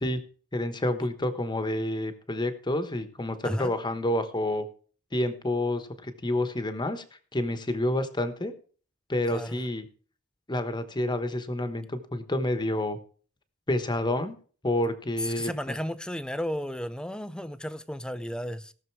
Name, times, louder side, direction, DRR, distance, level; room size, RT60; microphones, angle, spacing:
voice 1, 0.5-4.6 5.1-7.0 7.3-8.5 9.1-9.8 10.5-13.0 13.7-14.4 14.6-15.5, left 1 dB, 20° left, 1.1 m, -29 dB
voice 2, 9.3-9.6 15.2-18.7, equal, 5° left, 0.5 m, -33 dB
17.5 x 6.6 x 4.6 m
head